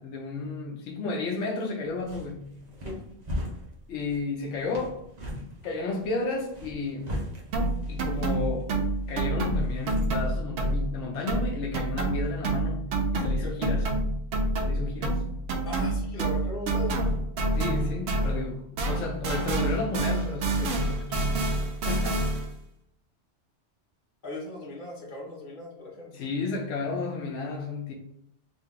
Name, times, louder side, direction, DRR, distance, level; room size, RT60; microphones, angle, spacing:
voice 1, 0.0-2.5 3.9-5.0 5.6-7.2 7.9-8.7 9.1-13.9 14.6-15.3 17.5-22.3 26.1-27.9, left 3 dB, 85° left, 0 dB, 0.9 m, -33 dB
sound 1, 1.8-10.3, left 1 dB, 40° right, 0.8 m, -40 dB
sound 2, 7.5-11.0 11.3-18.5 18.8-22.6, right 2 dB, 70° right, 0.8 m, -28 dB
voice 2, 13.4-13.7 15.6-17.1 24.2-26.1, left 2 dB, 45° left, -3 dB, 1.2 m, -38 dB
2.8 x 2.8 x 3.6 m, 0.71 s
omnidirectional pair, 1.2 m